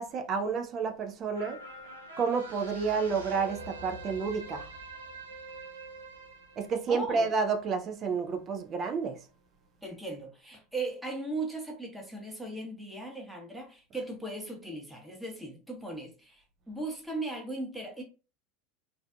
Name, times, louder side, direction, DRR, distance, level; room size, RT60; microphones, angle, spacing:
voice 1, 0.0-1.6 2.2-4.7 6.6-9.2, right 5 dB, 40° right, 0.5 m, -30 dB
sound 1, 1.3-8.0 8.4-8.5, right 2 dB, 85° right, 0.5 m, -45 dB
voice 2, 6.9-7.3 9.8-18.0, right 2 dB, 5° right, 1.0 m, -38 dB
2.5 x 2.4 x 2.3 m
hypercardioid pair, 85°, 0 cm